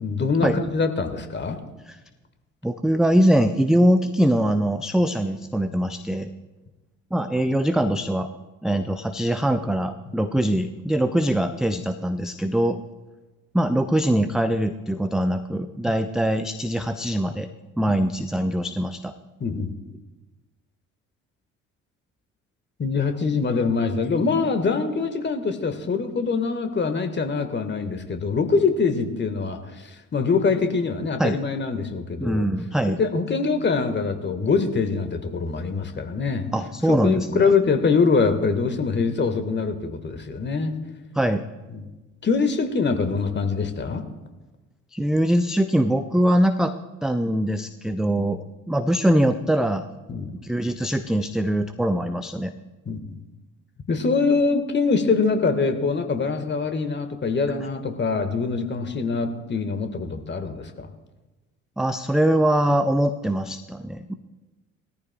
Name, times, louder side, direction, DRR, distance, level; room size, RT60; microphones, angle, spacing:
voice 1, 0.0-1.6 19.4-19.7 22.8-32.5 32.9-36.5 36.9-40.7 41.7-41.8 42.2-44.0 48.2-48.3 50.1-50.3 52.8-53.0 53.9-60.9, left 4 dB, 25° left, 7 dB, 1.6 m, -24 dB
voice 2, 2.6-6.3 7.1-8.3 8.6-12.8 13.5-17.5 17.8-19.1 31.2-31.4 32.2-33.0 36.5-37.5 41.2-41.4 44.9-46.8 47.0-49.9 50.4-52.5 61.8-64.1, right 1 dB, ahead, 9 dB, 0.5 m, -22 dB
20.5 x 14.0 x 2.3 m, 1.1 s
figure-of-eight pair, 50°, 40 cm